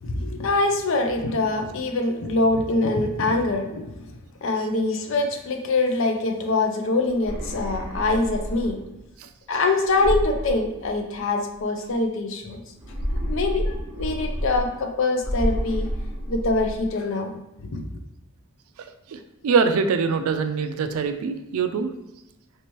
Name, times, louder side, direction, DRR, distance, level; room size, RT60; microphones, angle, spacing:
voice 1, 0.0-3.9 4.4-8.8 9.5-12.6 13.1-15.9 16.3-17.4 17.7-17.8, left 2 dB, 60° left, 4 dB, 0.5 m, -24 dB
sound 1, 7.1-9.0 9.9-11.3 12.7-14.9 15.2-16.9, equal, 10° right, 1.1 m, -29 dB
voice 2, 19.1-21.9, right 5 dB, 75° right, 8 dB, 0.3 m, -23 dB
3.3 x 2.9 x 3.0 m, 0.91 s
head